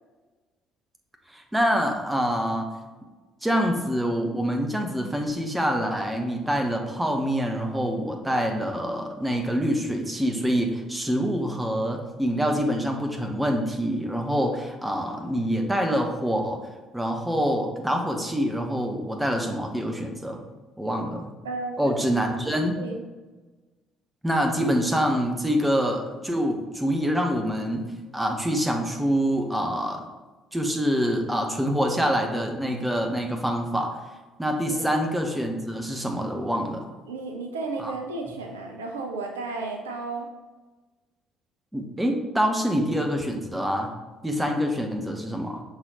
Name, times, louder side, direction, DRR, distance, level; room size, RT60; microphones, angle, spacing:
voice 1, 1.3-2.7 3.4-16.6 16.9-20.4 20.8-21.3 21.8-22.8 24.2-27.9 28.1-30.0 30.5-34.0 34.4-36.9 37.8-37.9 41.7-43.9 44.2-45.6, equal, 10° right, 3 dB, 1.0 m, -26 dB
voice 2, 21.4-21.8 22.1-22.2 22.8-23.0 34.7-34.9 37.1-40.3, right 3 dB, 75° right, 2 dB, 0.5 m, -33 dB
6.3 x 4.1 x 3.7 m, 1.2 s
figure-of-eight pair, 50°, 0 cm